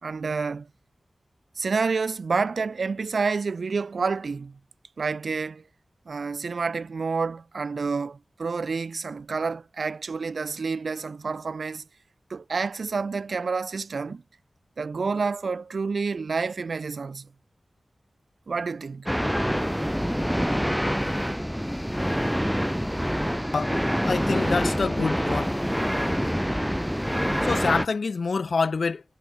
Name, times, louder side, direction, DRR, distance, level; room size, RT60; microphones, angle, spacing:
voice 1, 0.0-0.7 1.6-4.6 5.0-5.6 6.1-11.8 12.3-14.2 14.8-17.3 18.5-19.1, right 4 dB, 70° right, 1.3 m, -29 dB
sound 1, 19.1-27.9, equal, ahead, 0.5 m, -26 dB
voice 2, 24.1-25.6 27.4-29.0, left 4 dB, 70° left, 1.1 m, -26 dB
wide cardioid pair, 105°, 0 cm